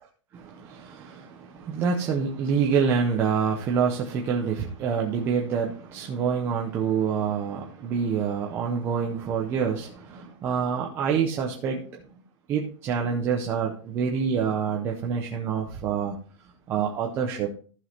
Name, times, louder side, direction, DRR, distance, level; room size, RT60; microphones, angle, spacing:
voice 1, 0.3-12.0 12.5-16.2 16.7-17.5, right 6 dB, 15° right, 0 dB, 0.6 m, -27 dB
14.0 x 6.2 x 2.9 m, 0.41 s
supercardioid pair, 175°, 17 cm